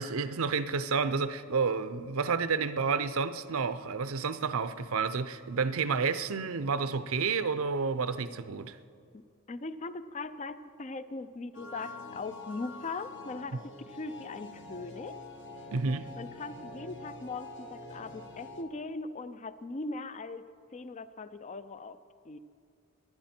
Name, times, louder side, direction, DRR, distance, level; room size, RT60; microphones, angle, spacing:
voice 1, 0.0-8.8 15.7-16.1, right 5 dB, 70° right, 0.6 m, -30 dB
voice 2, 9.5-15.2 16.2-20.4 20.7-22.0 22.2-22.4, left 3 dB, 30° left, 0.4 m, -40 dB
sound 1, 11.5-18.6, left 2 dB, 55° left, 1.4 m, -46 dB
22.0 x 9.9 x 4.4 m
head